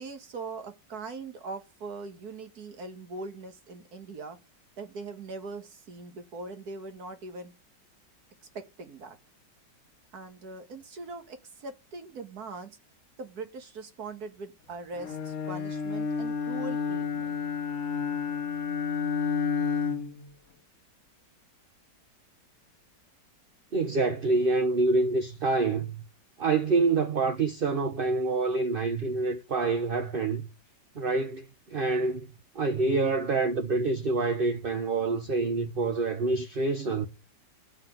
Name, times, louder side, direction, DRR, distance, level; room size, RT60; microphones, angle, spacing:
voice 1, 0.0-4.4 4.8-7.5 8.5-9.2 10.1-12.8 13.2-17.3, right 3 dB, 55° right, 2.0 m, -41 dB
Bowed string instrument, 15.0-20.3, left 6 dB, 50° left, 1.2 m, -30 dB
voice 2, 23.7-26.0 26.4-30.4 31.0-31.4 31.7-32.3 32.5-37.1, right 3 dB, 40° right, 0.9 m, -26 dB
14.5 x 5.9 x 9.2 m
omnidirectional pair, 2.0 m